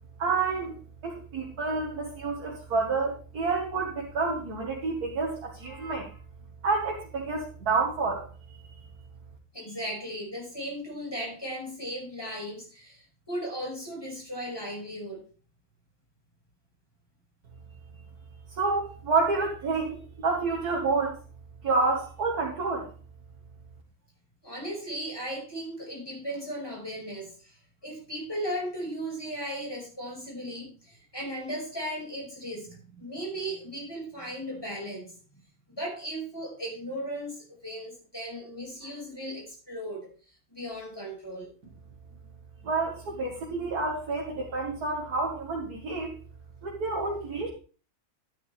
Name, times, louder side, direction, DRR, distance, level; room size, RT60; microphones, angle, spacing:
voice 1, 0.2-0.7 1.0-6.1 6.6-8.3 8.5-8.6 18.6-21.2 21.6-22.9 42.6-46.2 46.6-47.5, right 4 dB, 85° right, -1 dB, 2.2 m, -29 dB
voice 2, 9.5-15.2 24.4-27.6 27.8-35.1 35.7-40.1 40.5-41.5, equal, 15° left, -3 dB, 5.6 m, -36 dB
12.0 x 11.0 x 3.4 m, 0.38 s
omnidirectional pair, 1.6 m